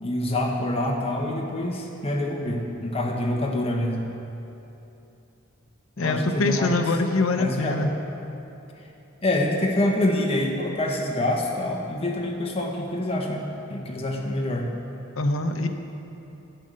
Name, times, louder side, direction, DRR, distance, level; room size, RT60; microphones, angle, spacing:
voice 1, 0.0-4.1 6.0-6.9 7.3-7.9 9.2-13.4 13.7-14.7, left 1 dB, 30° left, 0 dB, 1.1 m, -26 dB
voice 2, 6.0-7.9 15.2-15.7, left 2 dB, 65° left, 5 dB, 0.7 m, -24 dB
8.9 x 7.6 x 6.6 m, 2.9 s
head